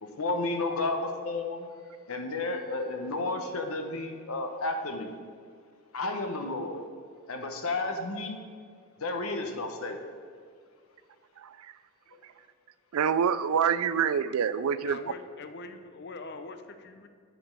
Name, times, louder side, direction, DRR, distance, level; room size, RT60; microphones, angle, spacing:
voice 1, 0.0-1.7 2.1-5.1 5.9-6.8 7.3-8.4 9.0-10.0, left 2 dB, 80° left, 5 dB, 1.0 m, -32 dB
voice 2, 11.4-11.7 12.9-15.0, right 7 dB, 85° right, 15 dB, 0.4 m, -26 dB
voice 3, 14.8-17.1, left 3 dB, 50° left, 8 dB, 0.6 m, -43 dB
8.7 x 5.2 x 5.3 m, 2.1 s
head